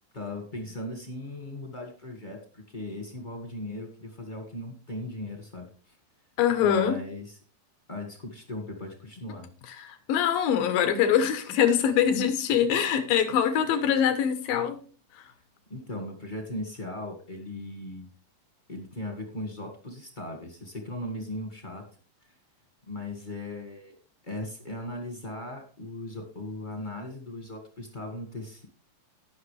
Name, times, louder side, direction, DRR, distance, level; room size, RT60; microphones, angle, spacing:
voice 1, 0.1-6.0 6.6-7.4 7.9-9.5 15.7-18.1 18.7-21.8 22.9-23.9 24.2-28.7, left 1 dB, 30° left, 3 dB, 0.9 m, -38 dB
voice 2, 6.4-7.0 9.8-14.8, left 8 dB, 90° left, 9 dB, 3.0 m, -23 dB
18.0 x 6.1 x 3.3 m, 0.39 s
omnidirectional pair, 3.9 m